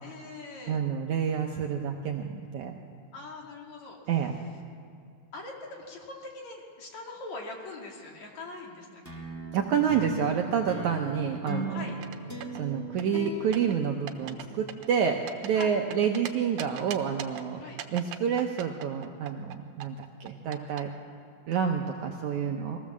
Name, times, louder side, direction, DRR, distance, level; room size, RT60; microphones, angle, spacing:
voice 1, 0.0-0.8 3.1-4.0 5.3-9.0 11.7-12.0 15.5-15.8 17.6-17.8, left 3 dB, 55° left, 0 dB, 3.5 m, -42 dB
voice 2, 0.7-2.8 4.1-4.4 9.5-11.9 12.6-17.6 17.9-20.9 21.5-22.9, right 7 dB, 70° right, 3 dB, 2.0 m, -28 dB
sound 1, 9.0-14.7, right 2 dB, 10° left, 0.7 m, -38 dB
sound 2, 11.9-12.6 13.0-13.8 14.1-14.4 14.7-16.3 16.6-17.4 17.8-19.6 19.8-20.8, right 11 dB, 85° right, 2.7 m, -39 dB
21.5 x 16.5 x 7.3 m, 2.4 s
omnidirectional pair, 4.2 m